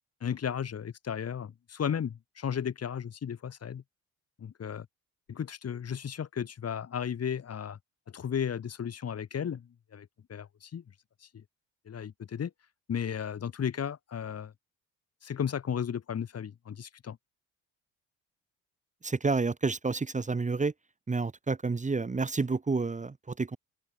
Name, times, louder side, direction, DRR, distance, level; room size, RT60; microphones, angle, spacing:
voice 1, 0.2-3.8 4.4-4.9 5.3-7.8 8.1-10.8 11.2-11.4 11.9-12.5 12.9-14.5 15.2-17.2, left 8 dB, 45° left, 1.8 m, -34 dB
voice 2, 19.0-20.7 21.1-23.6, right 4 dB, 20° right, 1.3 m, -29 dB
open air
supercardioid pair, 75°, 35 cm